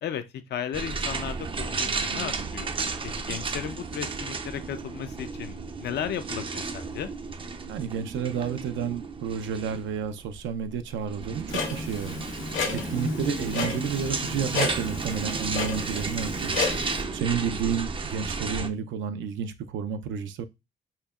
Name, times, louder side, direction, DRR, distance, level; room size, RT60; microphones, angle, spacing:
voice 1, 0.5-2.7 3.0-7.1, left 9 dB, 60° left, 0.5 m, -35 dB
sound 1, 0.7-18.7, right 4 dB, 25° right, 0.5 m, -33 dB
voice 2, 7.7-16.6 17.1-20.5, right 7 dB, 75° right, 0.5 m, -31 dB
Clock, 11.5-17.0, left 4 dB, 80° left, 1.4 m, -32 dB
4.4 x 2.8 x 2.3 m
cardioid pair, 90°, 20 cm